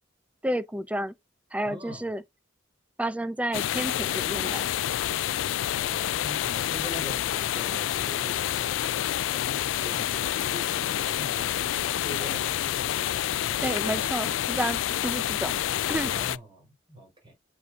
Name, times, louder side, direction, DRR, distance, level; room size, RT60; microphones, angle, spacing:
voice 1, 0.4-1.1 1.5-2.2 3.0-4.7 13.6-15.6 15.9-16.1, right 1 dB, 5° right, 0.5 m, -30 dB
voice 2, 1.6-2.1 5.7-13.0 16.1-17.3, equal, 25° right, 3.7 m, -43 dB
sound 1, 3.5-16.4, left 11 dB, 70° left, 0.3 m, -28 dB
Brass instrument, 10.1-14.2, right 3 dB, 50° right, 0.7 m, -50 dB
7.8 x 5.2 x 2.4 m
head